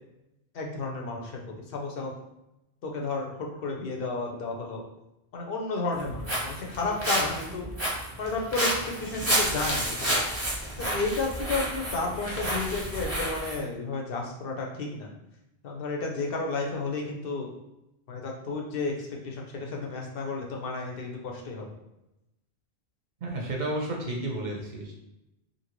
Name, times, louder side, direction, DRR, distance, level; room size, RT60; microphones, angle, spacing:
voice 1, 0.5-1.4 1.7-2.1 2.8-4.8 5.3-7.7 8.2-10.3 10.8-15.1 15.6-17.5 18.1-21.7, left 3 dB, 70° left, 0 dB, 0.8 m, -32 dB
Walk footsteps, 5.9-13.6, right 1 dB, 15° right, 0.6 m, -30 dB
voice 2, 23.2-24.9, right 1 dB, 55° right, -1 dB, 0.6 m, -32 dB
2.7 x 2.6 x 2.9 m, 0.91 s
omnidirectional pair, 1.0 m